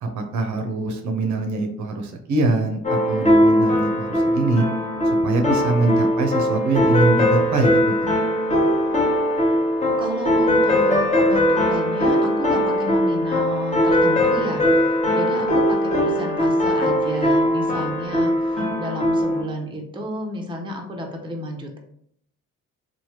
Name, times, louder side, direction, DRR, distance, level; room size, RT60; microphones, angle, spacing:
voice 1, 0.0-4.6 5.2-8.1 18.6-18.7, right 3 dB, 70° right, 4 dB, 0.6 m, -23 dB
sound 1, 2.8-19.4, equal, 25° left, 0.9 m, -20 dB
voice 2, 10.0-21.8, equal, 15° right, 1 dB, 0.6 m, -31 dB
3.1 x 2.2 x 2.9 m, 0.67 s
cardioid pair, 90°, 30 cm